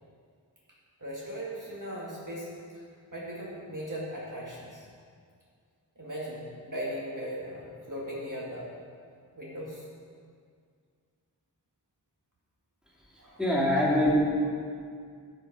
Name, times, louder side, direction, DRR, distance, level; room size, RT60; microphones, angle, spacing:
voice 1, 1.0-2.5 2.7-2.8 3.1-4.9 6.0-8.7 9.4-9.9 13.2-13.4 13.8-13.9, equal, 50° right, -5 dB, 1.8 m, -38 dB
voice 2, 13.4-14.2, equal, ahead, -6 dB, 2.7 m, -23 dB
9.5 x 8.0 x 4.7 m, 2.2 s
wide cardioid pair, 45°, 41 cm